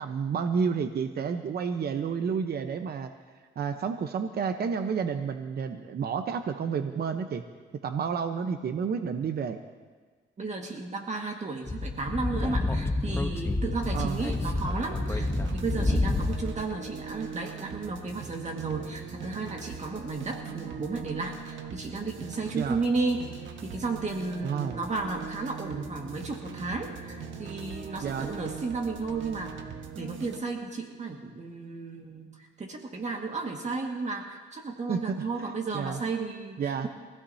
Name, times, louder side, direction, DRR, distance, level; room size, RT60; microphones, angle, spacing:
voice 1, 0.0-3.1 3.6-7.4 7.8-9.6 13.9-14.2 22.5-22.8 24.4-24.8 28.0-28.3 34.9-36.0 36.6-36.9, right 6 dB, 50° right, 7 dB, 1.0 m, -30 dB
voice 2, 10.4-23.3 23.6-29.6 30.0-36.9, right 3 dB, 35° right, 2 dB, 1.9 m, -33 dB
Speech / Wind, 11.7-16.6, left 2 dB, 10° left, 1.1 m, -29 dB
sound 1, 13.8-30.4, right 6 dB, 70° right, 1.5 m, -41 dB
24.5 x 16.5 x 2.8 m, 1.4 s
cardioid pair, 90°, 20 cm